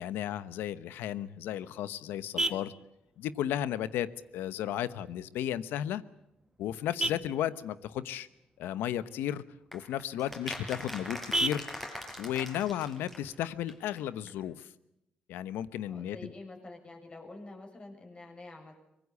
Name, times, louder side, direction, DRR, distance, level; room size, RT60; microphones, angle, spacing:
voice 1, 0.0-2.7 3.2-6.0 6.6-8.3 8.6-9.4 9.7-11.6 12.2-14.7 15.3-16.3, left 11 dB, 90° left, 15 dB, 1.0 m, -34 dB
Vehicle horn car horn honking, 1.1-14.1, right 2 dB, 15° right, 1.5 m, -40 dB
sound 1, 9.7-13.4 13.7-13.8 14.0-14.1 14.3-14.4, left 1 dB, 10° left, 5.2 m, -42 dB
voice 2, 15.9-18.7, left 2 dB, 30° left, 2 dB, 6.8 m, -48 dB
23.5 x 21.0 x 8.5 m, 0.86 s
cardioid pair, 85°, 3 cm